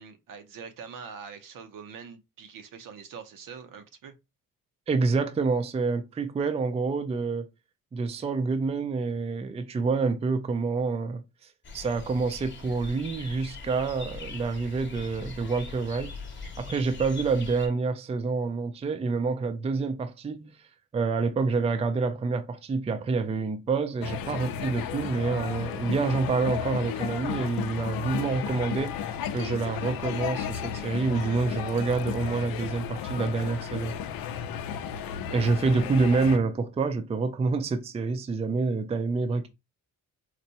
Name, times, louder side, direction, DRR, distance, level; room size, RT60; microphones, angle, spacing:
voice 1, 0.0-4.1, right 6 dB, 70° right, 0.8 m, -44 dB
voice 2, 4.9-7.5 7.9-11.2 11.7-16.1 16.6-20.6 20.9-33.9 35.3-39.5, right 4 dB, 20° right, 0.4 m, -27 dB
sound 1, 11.6-17.7, left 4 dB, 35° left, 0.9 m, -41 dB
sound 2, 24.0-36.4, left 8 dB, 80° left, 0.5 m, -33 dB
4.1 x 2.2 x 2.8 m
cardioid pair, 110°, 35 cm